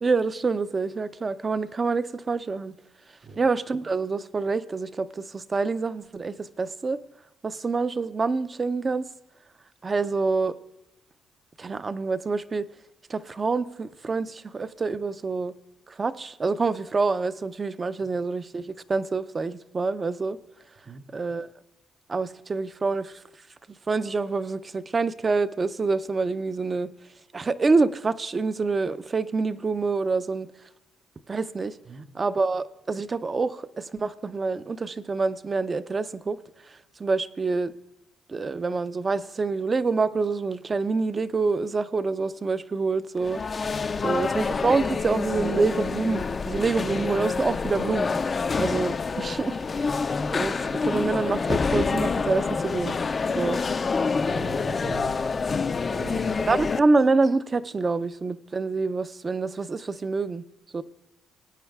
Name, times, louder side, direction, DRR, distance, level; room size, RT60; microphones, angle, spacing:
voice 1, 0.0-2.7 3.4-7.0 7.4-9.1 9.8-10.6 11.6-12.7 13.1-15.5 15.9-20.4 21.1-21.5 22.1-23.2 23.9-26.9 27.3-30.5 31.3-31.8 32.1-36.4 37.0-37.7 38.3-43.4 44.0-48.1 48.6-49.6 50.3-53.0 53.4-53.6 56.5-60.4 60.7-60.8, right 4 dB, 30° right, 0.5 m, -26 dB
sound 1, 43.2-56.8, left 4 dB, 35° left, 0.4 m, -27 dB
voice 2, 54.1-55.2 55.9-56.5, right 4 dB, 55° right, 2.0 m, -40 dB
20.0 x 9.3 x 2.3 m
cardioid pair, 90°, 0 cm